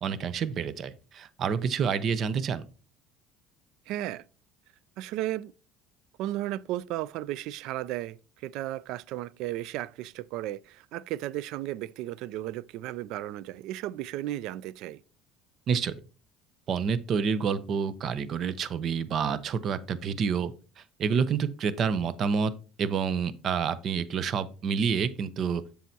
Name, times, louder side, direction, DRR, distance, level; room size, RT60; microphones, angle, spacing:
voice 1, 0.0-2.6 15.7-15.9 16.7-22.5 22.8-25.6, right 6 dB, 50° right, 0.7 m, -28 dB
voice 2, 3.9-4.2 5.0-5.5 6.2-8.2 8.4-15.0, right 14 dB, 70° right, 0.3 m, -34 dB
7.4 x 7.0 x 2.7 m
supercardioid pair, 90°, 0 cm